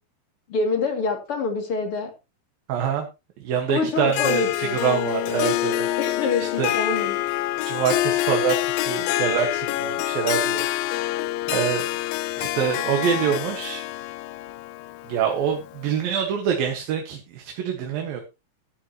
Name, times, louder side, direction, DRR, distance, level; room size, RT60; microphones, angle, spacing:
voice 1, 0.5-2.1 3.7-4.8 6.0-7.2, left 4 dB, 40° left, 4 dB, 3.3 m, -26 dB
voice 2, 2.7-3.1 3.4-5.9 6.4-6.7 7.6-10.6 11.5-11.8 12.4-13.9 15.1-18.2, right 8 dB, 80° right, 3 dB, 3.5 m, -25 dB
Harp, 4.1-15.9, left 16 dB, 85° left, 2.5 m, -26 dB
14.0 x 11.5 x 3.0 m, 0.27 s
omnidirectional pair, 4.1 m